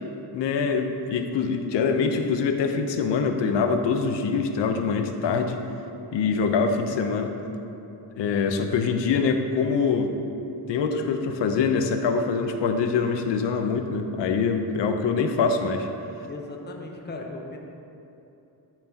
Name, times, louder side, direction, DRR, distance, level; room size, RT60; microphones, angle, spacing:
voice 1, 0.3-5.6 6.1-7.3 8.2-10.1 10.7-15.9, left 5 dB, 75° left, 6 dB, 0.8 m, -24 dB
voice 2, 16.2-17.6, left 2 dB, 25° left, 1 dB, 1.0 m, -37 dB
13.0 x 6.0 x 2.9 m, 2.9 s
cardioid pair, 110°, 44 cm